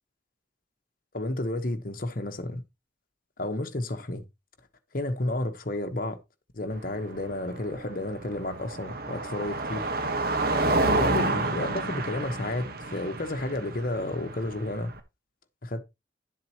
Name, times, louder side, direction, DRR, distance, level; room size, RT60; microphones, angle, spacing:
voice 1, 1.1-2.6 3.4-4.2 4.9-6.2 6.6-9.9 10.7-14.9 15.6-15.8, left 1 dB, 45° left, 1.2 m, -31 dB
Car passing by, 6.7-15.0, right 2 dB, 50° right, 1.3 m, -29 dB
11.0 x 7.7 x 3.0 m
head